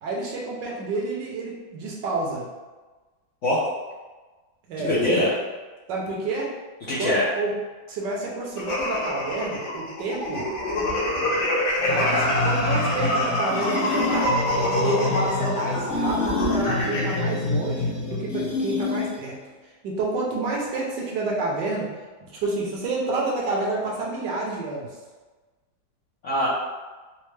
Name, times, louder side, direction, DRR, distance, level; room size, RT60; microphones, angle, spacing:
voice 1, 0.0-2.4 4.7-4.9 5.9-6.5 7.0-7.6 7.9-10.5 11.8-14.3 14.7-19.3 19.8-21.9 22.3-24.9, right 2 dB, 70° right, -3 dB, 1.3 m, -29 dB
voice 2, 4.8-5.3 6.9-7.3 26.2-26.5, left 1 dB, 65° left, -9 dB, 0.7 m, -22 dB
sound 1, 8.6-17.2, left 1 dB, 90° left, 1.6 m, -25 dB
sound 2, 11.8-19.4, left 3 dB, 45° left, 1.1 m, -27 dB
4.2 x 2.1 x 3.1 m, 1.3 s
omnidirectional pair, 2.1 m